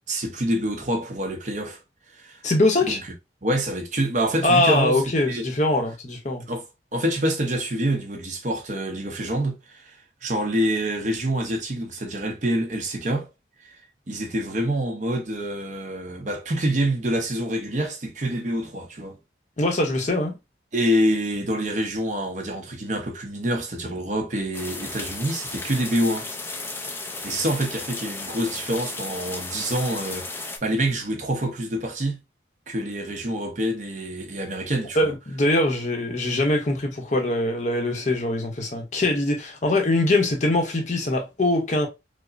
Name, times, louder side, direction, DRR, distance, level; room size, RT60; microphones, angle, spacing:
voice 1, 0.0-1.8 2.1-2.4 2.9-3.1 3.4-5.0 5.3-5.5 6.5-6.7 6.9-13.3 13.6-13.8 14.1-19.2 20.7-26.3 26.9-32.2 32.7-35.1, right 1 dB, 40° right, 0.7 m, -26 dB
voice 2, 2.4-3.0 4.4-6.4 19.6-20.3 35.0-41.9, left 1 dB, 40° left, 0.7 m, -22 dB
sound 1, 24.5-30.6, left 3 dB, 15° left, 0.4 m, -34 dB
5.0 x 2.0 x 2.4 m
head